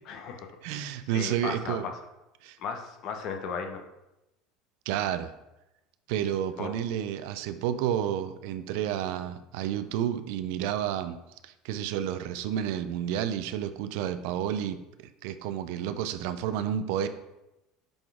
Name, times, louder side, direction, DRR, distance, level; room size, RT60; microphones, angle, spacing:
voice 1, 0.1-1.9 2.6-3.8 6.6-6.8, left 5 dB, 55° left, 5 dB, 0.9 m, -36 dB
voice 2, 0.6-1.9 2.4-2.6 4.9-5.3 6.1-11.2 11.4-14.8 15.2-17.1, right 10 dB, 65° right, 11 dB, 0.4 m, -30 dB
6.8 x 3.9 x 3.6 m, 0.93 s
hypercardioid pair, 70°, 0 cm